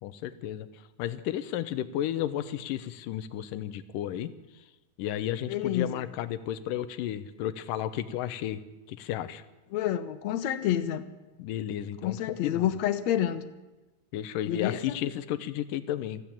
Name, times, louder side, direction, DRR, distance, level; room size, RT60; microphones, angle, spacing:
voice 1, 0.0-4.6 5.0-8.6 8.9-9.4 11.4-12.7 14.1-16.2, left 11 dB, 90° left, 13 dB, 2.5 m, -33 dB
voice 2, 5.5-5.9 9.7-11.1 12.0-13.4 14.5-15.0, left 11 dB, 65° left, 12 dB, 2.1 m, -28 dB
20.5 x 14.5 x 8.7 m, 1.1 s
omnidirectional pair, 3.8 m